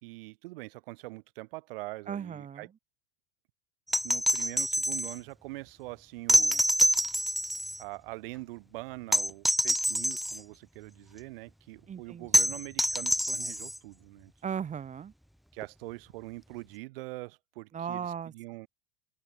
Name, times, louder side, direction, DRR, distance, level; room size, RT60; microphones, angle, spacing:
voice 1, 0.0-2.7 4.0-6.6 7.8-14.3 15.5-18.7, right 22 dB, 65° right, 3.2 m, -43 dB
voice 2, 2.1-2.7 11.9-12.5 14.4-15.1 17.7-18.3, right 8 dB, 25° right, 1.2 m, -37 dB
sound 1, 3.9-5.2 6.3-7.8 9.1-10.4 12.3-13.8 15.6-15.7, equal, ahead, 1.4 m, -26 dB
open air
hypercardioid pair, 85°, 30 cm